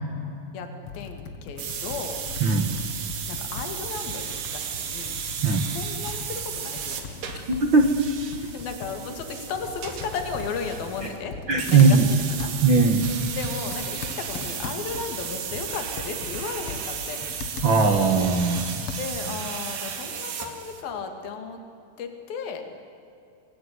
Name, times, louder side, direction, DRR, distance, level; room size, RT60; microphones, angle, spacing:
voice 1, 0.5-2.2 3.3-5.2 5.7-7.2 8.4-11.4 11.7-12.6 13.3-17.3 18.9-21.6 22.0-22.6, left 5 dB, 65° left, 6 dB, 4.2 m, -35 dB
Computer keyboard, 0.8-19.4, left 4 dB, 50° left, 1.9 m, -39 dB
sound 1, 1.6-11.2 11.6-20.8, right 7 dB, 75° right, 4.3 m, -34 dB
voice 2, 7.5-7.9 11.5-12.0 12.6-13.1 17.6-18.8, right 4 dB, 50° right, 5 dB, 1.4 m, -19 dB
28.0 x 20.5 x 9.7 m, 2.6 s
omnidirectional pair, 4.6 m